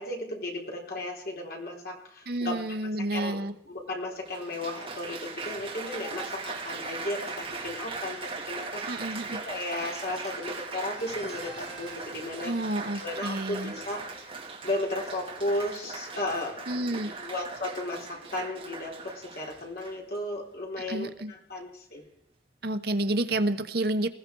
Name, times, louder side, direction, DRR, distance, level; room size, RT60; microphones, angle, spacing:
voice 1, 0.0-12.5 12.9-14.0 14.6-22.0, left 1 dB, 55° left, -1 dB, 4.3 m, -35 dB
voice 2, 2.3-3.5 8.9-9.4 12.4-13.7 16.7-17.1 20.9-21.3 22.6-24.1, right 1 dB, 60° right, 8 dB, 1.1 m, -29 dB
Applause, 3.5-3.6 4.3-20.2 20.9-21.2, right 4 dB, 30° right, 2.9 m, -39 dB
sound 1, 10.9-18.3, right 1 dB, 25° left, 3.3 m, -53 dB
20.5 x 15.0 x 4.7 m, 0.71 s
head